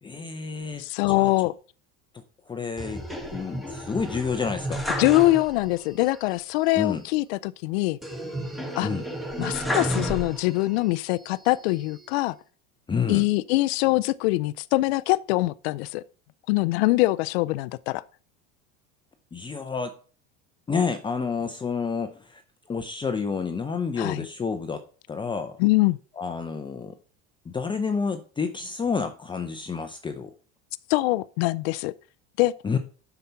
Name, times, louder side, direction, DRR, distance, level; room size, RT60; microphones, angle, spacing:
voice 1, 0.0-1.3 2.1-4.8 6.7-7.0 8.8-9.0 12.9-13.3 19.3-19.9 20.7-22.4 22.7-24.8 25.1-25.6 26.2-27.0 27.5-30.3 32.6-32.8, left 5 dB, 15° left, 0.7 m, -29 dB
voice 2, 0.8-1.5 5.0-8.0 8.8-8.9 9.4-12.4 13.1-16.0 16.5-18.0 24.0-24.3 25.6-26.0 30.9-31.9 32.4-32.5, left 20 dB, 75° left, 0.5 m, -23 dB
sound 1, 2.8-5.8 6.1-6.2 8.0-10.8 11.3-12.1, equal, ahead, 1.6 m, -32 dB
7.5 x 5.9 x 5.6 m
supercardioid pair, 115°, 31 cm